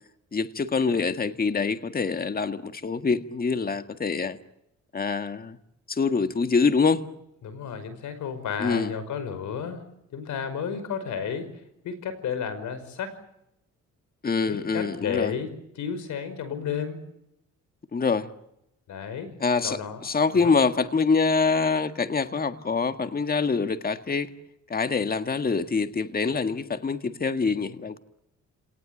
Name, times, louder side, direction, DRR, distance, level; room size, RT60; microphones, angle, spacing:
voice 1, 0.3-4.4 4.9-5.6 5.9-7.0 8.6-8.9 14.2-15.3 17.9-18.3 19.4-24.3 24.7-28.0, left 4 dB, 30° left, 1.8 m, -25 dB
voice 2, 7.4-9.8 10.1-11.5 11.8-13.2 14.5-17.0 18.9-19.3 19.6-20.0 20.4-20.5, left 7 dB, 75° left, 5.4 m, -32 dB
29.0 x 19.0 x 9.1 m
cardioid pair, 90°, 30 cm